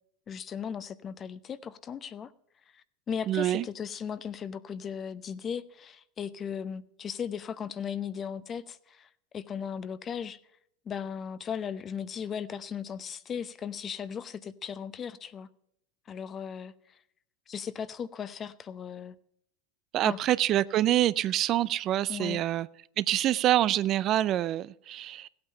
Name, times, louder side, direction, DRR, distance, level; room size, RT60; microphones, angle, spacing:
voice 1, 0.3-2.3 2.7-10.4 10.8-15.5 16.1-17.0 17.5-19.2 20.0-20.2 22.1-22.4, left 7 dB, 35° left, 0.7 m, -37 dB
voice 2, 3.3-3.6 19.9-22.7 23.0-25.3, right 13 dB, 45° right, 0.4 m, -26 dB
15.5 x 8.7 x 5.6 m
hypercardioid pair, 90°, 0 cm